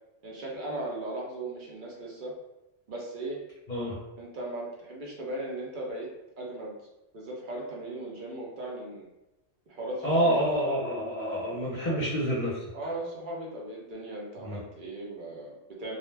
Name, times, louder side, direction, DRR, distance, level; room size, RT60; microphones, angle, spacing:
voice 1, 0.2-2.3 2.9-3.4 4.2-6.1 6.4-6.7 7.1-9.1 9.7-10.4 11.8-12.0 12.7-16.0, right 1 dB, 55° right, -3 dB, 0.6 m, -37 dB
voice 2, 10.0-12.6 14.4-14.6, equal, 45° left, -7 dB, 0.7 m, -28 dB
2.3 x 2.1 x 3.2 m, 0.95 s
omnidirectional pair, 1.3 m